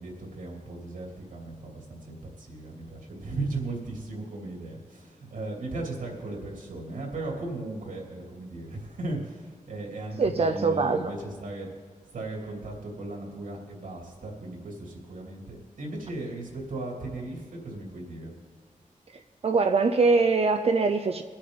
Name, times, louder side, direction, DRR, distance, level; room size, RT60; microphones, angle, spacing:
voice 1, 0.0-11.7 12.1-18.3, right 2 dB, 80° right, -1 dB, 2.9 m, -36 dB
voice 2, 10.2-11.1 19.4-21.2, right 4 dB, 50° right, 7 dB, 0.5 m, -23 dB
22.5 x 8.7 x 4.0 m, 1.5 s
wide cardioid pair, 160°, 13 cm